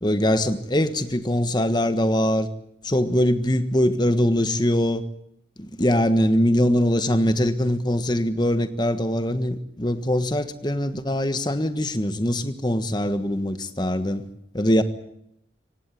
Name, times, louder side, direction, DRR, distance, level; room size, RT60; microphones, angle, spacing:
voice 1, 0.0-2.5 2.8-5.0 5.6-14.3 14.5-14.8, left 1 dB, 25° left, 1.5 m, -22 dB
25.0 x 17.5 x 9.4 m
head